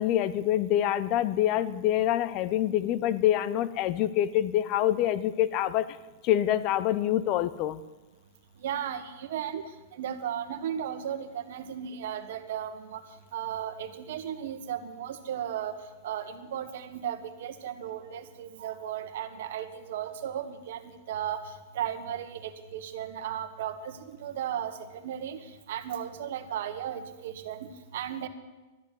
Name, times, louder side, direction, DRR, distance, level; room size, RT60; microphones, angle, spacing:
voice 1, 0.0-5.9 6.2-7.8, left 12 dB, 45° left, 15 dB, 0.8 m, -26 dB
voice 2, 8.6-9.6 10.0-13.0 13.3-15.8 16.0-21.4 21.7-28.3, right 9 dB, 70° right, 10 dB, 1.4 m, -35 dB
12.5 x 11.0 x 8.5 m, 1.1 s
hypercardioid pair, 115°, 0 cm